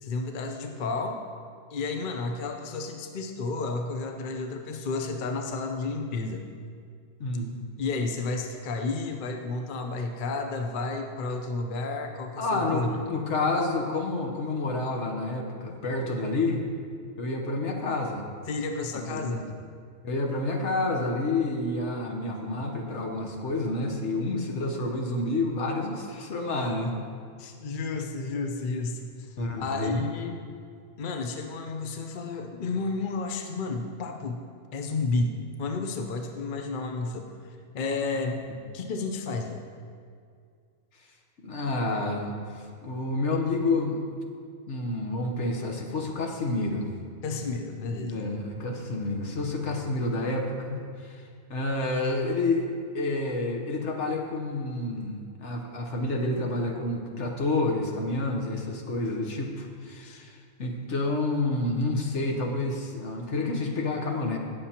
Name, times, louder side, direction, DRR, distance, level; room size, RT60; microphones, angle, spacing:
voice 1, 0.0-1.2 1.7-6.4 7.8-13.1 18.5-19.4 27.4-30.5 31.0-34.4 34.7-35.3 35.6-37.3 37.7-38.4 38.7-39.6 47.2-48.2 60.0-60.2, left 3 dB, 50° left, 4 dB, 0.8 m, -31 dB
voice 2, 7.2-7.5 12.4-16.6 17.2-18.3 18.9-19.4 20.0-26.9 29.4-30.0 38.2-38.4 41.4-44.0 44.7-46.9 48.0-51.2 51.5-64.4, left 2 dB, 75° left, 2 dB, 1.4 m, -29 dB
18.0 x 6.8 x 2.9 m, 2.2 s
omnidirectional pair, 1.2 m